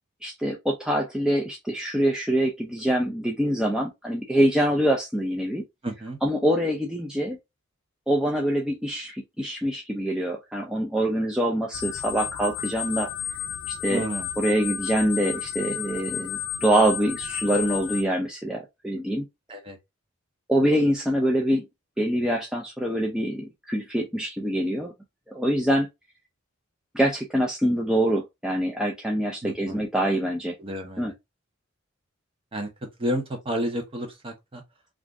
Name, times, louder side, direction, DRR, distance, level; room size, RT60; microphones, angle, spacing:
voice 1, 0.2-5.6 6.2-7.4 8.1-13.1 13.7-14.0 14.4-19.3 20.5-21.7 22.0-24.9 25.3-25.9 26.9-30.5 31.0-31.1, right 1 dB, 5° right, 0.4 m, -25 dB
voice 2, 5.8-6.2 13.9-14.3 19.5-19.8 29.4-29.8 30.6-31.1 32.5-32.7 33.0-34.6, right 1 dB, 25° right, 0.8 m, -31 dB
sound 1, 11.7-18.0, left 9 dB, 85° left, 0.3 m, -32 dB
2.5 x 2.4 x 3.2 m
head